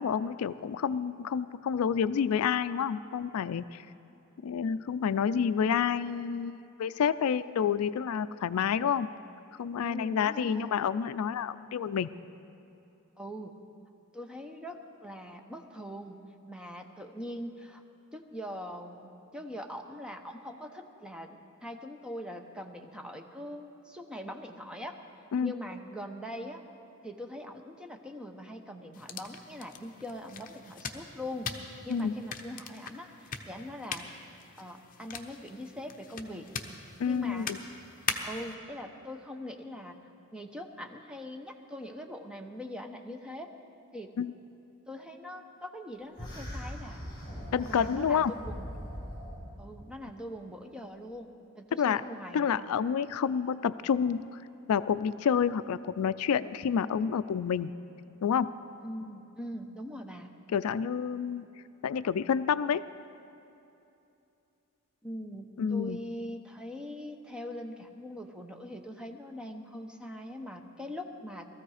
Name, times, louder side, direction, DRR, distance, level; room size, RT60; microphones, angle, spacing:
voice 1, 0.0-3.8 4.4-9.1 9.6-12.1 25.3-25.5 31.9-32.1 37.0-37.6 44.2-44.3 47.5-48.3 51.8-52.0 52.3-54.4 54.7-57.7 58.2-58.5 60.5-61.5 61.8-62.8 65.6-66.0, left 7 dB, 75° left, 15 dB, 0.4 m, -29 dB
voice 2, 9.8-10.7 13.2-13.5 14.1-16.2 16.5-17.8 18.1-24.9 25.4-26.6 27.0-34.1 34.6-36.5 37.1-37.5 38.2-40.0 40.3-43.5 43.9-44.1 44.9-47.0 47.7-48.6 49.6-51.3 51.5-52.7 58.8-60.3 65.0-71.5, equal, 5° right, 3 dB, 0.8 m, -42 dB
sound 1, 28.9-38.5, left 5 dB, 40° left, 0.9 m, -41 dB
sound 2, 46.2-49.6, equal, 20° left, 4.5 m, -41 dB
19.0 x 14.0 x 4.9 m, 2.8 s
head